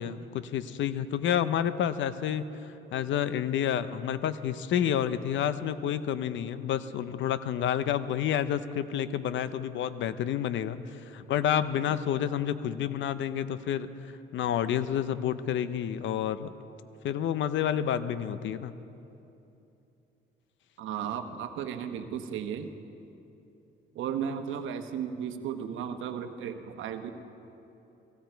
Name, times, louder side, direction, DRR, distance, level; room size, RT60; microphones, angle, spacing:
voice 1, 0.0-16.5 17.0-18.7, left 9 dB, 75° left, 13 dB, 0.6 m, -29 dB
voice 2, 20.8-22.7 23.9-27.1, right 8 dB, 80° right, 7 dB, 1.0 m, -35 dB
16.5 x 15.5 x 4.5 m, 2.8 s
cardioid pair, 90°, 20 cm